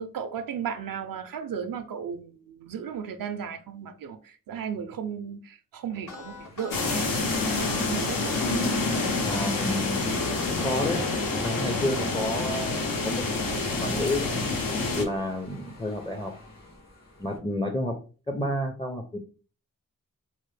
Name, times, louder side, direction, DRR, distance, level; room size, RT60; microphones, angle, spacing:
voice 1, 0.0-8.3, right 7 dB, 85° right, 0.5 m, -35 dB
sound 1, 5.9-12.7, left 3 dB, 70° left, 1.2 m, -41 dB
sound 2, 6.0-17.4, left 1 dB, 50° left, 1.6 m, -44 dB
sound 3, 6.7-15.0, left 3 dB, 90° left, 0.8 m, -27 dB
voice 2, 9.2-11.0 11.3-14.3 14.9-16.3 17.2-18.0 18.3-19.2, left 1 dB, 15° left, 0.4 m, -31 dB
4.2 x 2.0 x 3.2 m
cardioid pair, 70°, 33 cm